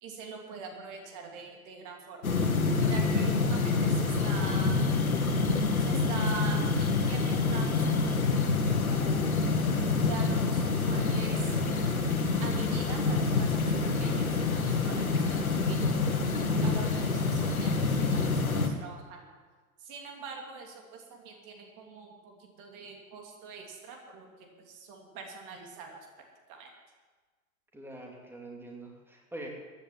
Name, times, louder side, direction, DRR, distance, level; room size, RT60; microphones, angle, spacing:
voice 1, 0.0-2.2 2.8-4.9 5.8-9.2 10.0-11.6 12.4-14.4 14.6-16.2 16.6-19.2 19.8-26.0 26.5-26.7, right 4 dB, 45° right, 1 dB, 3.0 m, -44 dB
sound 1, 2.2-18.7, left 4 dB, 85° left, 1.5 m, -27 dB
voice 2, 27.7-29.6, right 1 dB, 5° right, 0 dB, 2.8 m, -44 dB
15.5 x 10.0 x 7.2 m, 1.4 s
figure-of-eight pair, 85°, 41 cm